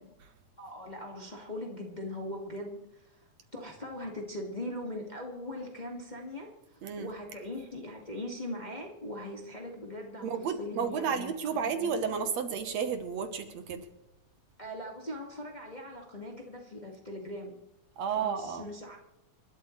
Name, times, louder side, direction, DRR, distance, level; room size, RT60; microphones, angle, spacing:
voice 1, 0.6-10.3 10.6-11.9 14.6-17.5 18.1-19.0, left 1 dB, 20° left, 0 dB, 1.5 m, -40 dB
voice 2, 10.2-13.8 18.0-18.7, right 6 dB, 70° right, 7 dB, 2.2 m, -32 dB
28.5 x 12.5 x 3.2 m, 0.93 s
omnidirectional pair, 3.5 m